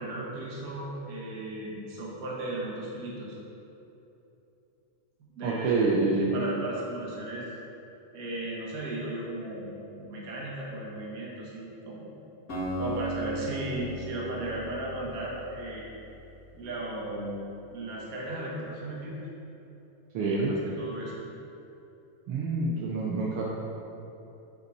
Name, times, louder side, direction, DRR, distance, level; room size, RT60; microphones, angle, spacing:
voice 1, 0.0-3.4 5.3-7.5 8.1-12.1 12.8-15.9 16.5-19.2 20.2-21.1, right 1 dB, 50° right, -4 dB, 1.0 m, -36 dB
voice 2, 5.4-6.6 20.1-20.5 22.3-23.4, right 3 dB, 90° right, -5 dB, 1.2 m, -27 dB
Acoustic guitar, 12.5-16.6, right 1 dB, 35° left, 1.6 m, -37 dB
7.7 x 5.3 x 4.2 m, 2.9 s
omnidirectional pair, 3.5 m